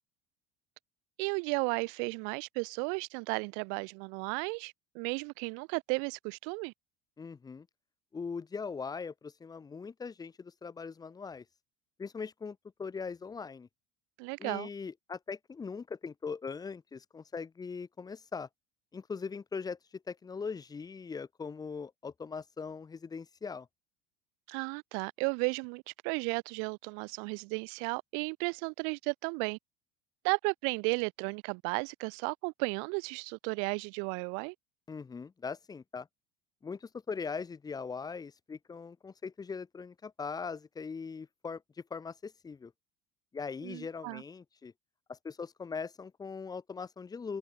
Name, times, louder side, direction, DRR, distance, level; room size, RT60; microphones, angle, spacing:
voice 1, 1.2-6.7 14.2-14.7 24.5-29.6 30.2-34.5 43.6-44.2, right 40 dB or more, 70° right, 0.6 m, -34 dB
voice 2, 7.2-7.7 8.1-11.4 12.0-13.7 14.4-18.5 18.9-23.7 34.9-36.1 36.6-41.6 41.9-42.7 43.3-44.7 45.1-47.4, left 5 dB, 20° left, 4.6 m, -40 dB
cardioid pair, 145°, 21 cm